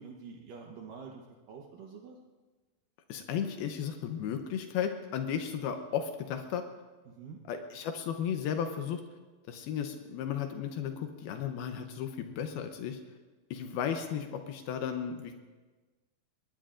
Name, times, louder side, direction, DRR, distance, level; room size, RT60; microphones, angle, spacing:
voice 1, 0.0-2.2 7.1-7.4, right 5 dB, 70° right, 1 dB, 2.4 m, -47 dB
voice 2, 3.1-6.6 7.5-9.0 9.5-13.0 13.5-15.3, left 8 dB, 80° left, 5 dB, 2.7 m, -34 dB
23.0 x 20.5 x 2.5 m, 1.3 s
omnidirectional pair, 4.4 m